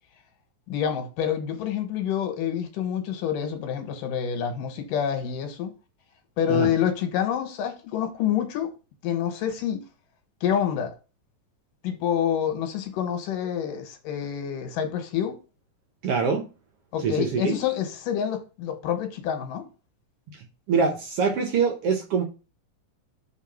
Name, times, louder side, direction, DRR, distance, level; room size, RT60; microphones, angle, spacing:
voice 1, 0.7-5.7 6.4-8.7 9.0-9.8 10.4-10.9 11.8-15.4 16.9-19.7, left 9 dB, 90° left, 2.9 m, -27 dB
voice 2, 16.0-16.4 17.0-17.6 20.7-22.2, right 5 dB, 65° right, 1.6 m, -24 dB
5.9 x 3.6 x 5.8 m
omnidirectional pair, 3.7 m